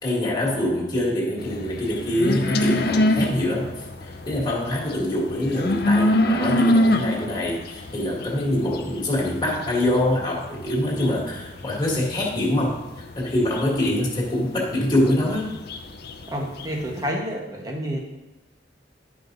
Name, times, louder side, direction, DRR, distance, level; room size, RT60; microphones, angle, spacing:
voice 1, 0.0-12.8 13.1-15.5, left 1 dB, 20° left, -4 dB, 2.0 m, -24 dB
sound 1, 1.4-17.1, left 1 dB, 55° left, 0.7 m, -26 dB
voice 2, 16.3-18.0, equal, 20° right, 0 dB, 1.2 m, -29 dB
11.5 x 5.0 x 4.0 m, 1.1 s
head